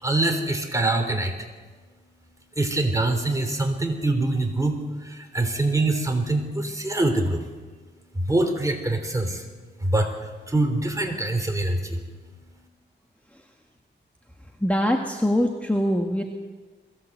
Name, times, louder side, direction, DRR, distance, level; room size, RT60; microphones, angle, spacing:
voice 1, 0.0-1.3 2.6-7.4 8.1-9.4 9.8-12.0, right 2 dB, 15° right, 4 dB, 3.4 m, -24 dB
voice 2, 14.6-16.2, equal, 5° left, 2 dB, 1.7 m, -23 dB
22.0 x 16.0 x 8.0 m, 1.4 s
wide cardioid pair, 95°, 19 cm